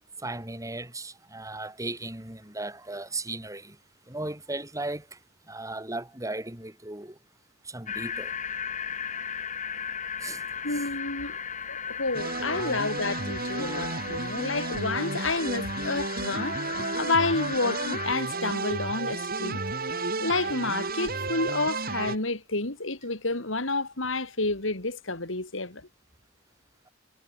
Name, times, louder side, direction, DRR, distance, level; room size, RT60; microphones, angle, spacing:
voice 1, 0.2-3.8 4.1-5.2 5.5-7.2 7.6-8.3 10.2-10.8 12.2-12.8 13.5-14.0, right 2 dB, 15° right, 7.8 m, -37 dB
sound 1, 7.9-18.1, left 7 dB, 40° left, 3.2 m, -36 dB
voice 2, 10.6-11.4 11.7-19.6 19.9-25.9, left 3 dB, 70° left, 3.9 m, -30 dB
sound 2, 12.1-22.2, right 3 dB, 50° right, 6.4 m, -32 dB
head